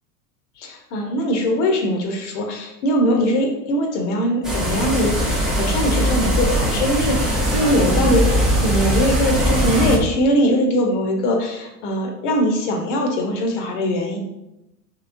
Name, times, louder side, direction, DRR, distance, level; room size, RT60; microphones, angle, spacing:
voice 1, 0.6-14.2, equal, 50° left, 2 dB, 0.8 m, -21 dB
sound 1, 4.4-10.0, equal, ahead, 0.4 m, -20 dB
3.1 x 3.0 x 2.5 m, 0.88 s
figure-of-eight pair, 85°, 46 cm